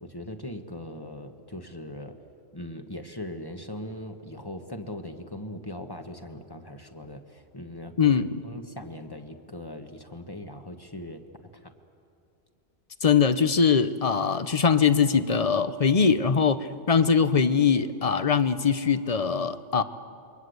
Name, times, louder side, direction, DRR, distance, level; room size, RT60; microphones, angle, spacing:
voice 1, 0.0-2.2 2.5-8.2 8.4-11.2 11.6-11.7, left 1 dB, 20° left, 5 dB, 1.4 m, -40 dB
voice 2, 8.0-8.3 13.0-19.8, left 6 dB, 40° left, 12 dB, 0.8 m, -22 dB
28.0 x 23.0 x 8.1 m, 2.6 s
omnidirectional pair, 1.1 m